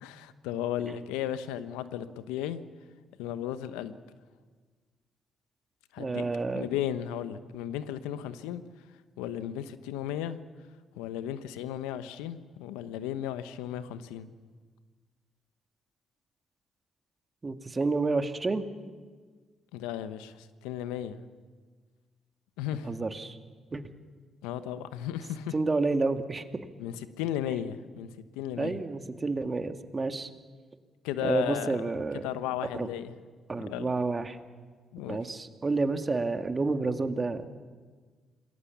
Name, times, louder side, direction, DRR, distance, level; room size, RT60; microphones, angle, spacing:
voice 1, 0.0-2.6 3.2-3.9 5.9-6.3 6.5-8.6 9.2-10.4 11.0-14.3 19.7-21.2 22.6-23.0 24.4-25.5 26.8-28.8 31.0-31.9 32.2-33.1 33.7-33.9 34.9-35.2, left 11 dB, 85° left, 12 dB, 1.0 m, -35 dB
voice 2, 6.0-6.7 17.4-18.6 22.9-23.4 23.7-23.8 25.5-26.4 28.6-30.3 31.2-32.3 32.7-32.9 33.5-34.4 35.1-37.5, right 3 dB, 35° right, 7 dB, 2.0 m, -29 dB
27.5 x 20.5 x 7.2 m, 1.5 s
hypercardioid pair, 50°, 0 cm